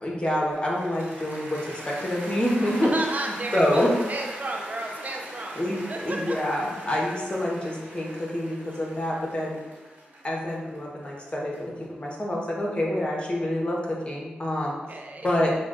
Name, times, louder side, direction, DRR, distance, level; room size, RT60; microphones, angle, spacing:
voice 1, 0.0-2.9 3.5-3.9 5.6-9.6 10.2-11.7 12.0-14.8 15.2-15.5, left 1 dB, 30° left, -3 dB, 1.0 m, -27 dB
Cheering / Applause, 0.5-12.7, right 1 dB, 80° right, 1.2 m, -41 dB
voice 2, 2.8-5.6 5.9-6.4 14.9-15.3, right 2 dB, 45° right, 1 dB, 0.5 m, -32 dB
5.8 x 2.3 x 2.5 m, 1.1 s
cardioid pair, 55°, 4 cm